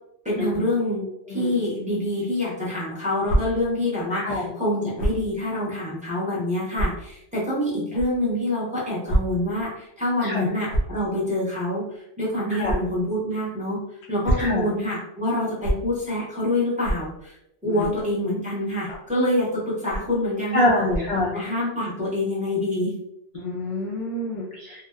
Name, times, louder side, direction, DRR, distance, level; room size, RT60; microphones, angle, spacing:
voice 1, 0.2-13.8 14.1-17.4 17.6-21.0 21.3-22.9, left 1 dB, 10° right, -8 dB, 0.7 m, -26 dB
sound 1, 3.2-3.4 5.0-5.2 5.9-6.0 6.7-6.9 7.9-8.1 9.1-9.2 9.5-9.7 10.6-11.0 12.6-12.8 14.0-14.5 15.6-15.7 16.8-17.0 17.8-18.0 18.9-19.1 19.9-20.2 20.8-21.1, right 1 dB, 70° left, 0.8 m, -25 dB
voice 2, 4.1-4.5 10.2-10.5 12.6-12.7 14.4-14.7 17.6-17.9 20.5-21.3 23.3-24.9, left 1 dB, 50° left, -7 dB, 0.4 m, -26 dB
2.8 x 2.0 x 2.3 m, 0.83 s
omnidirectional pair, 1.2 m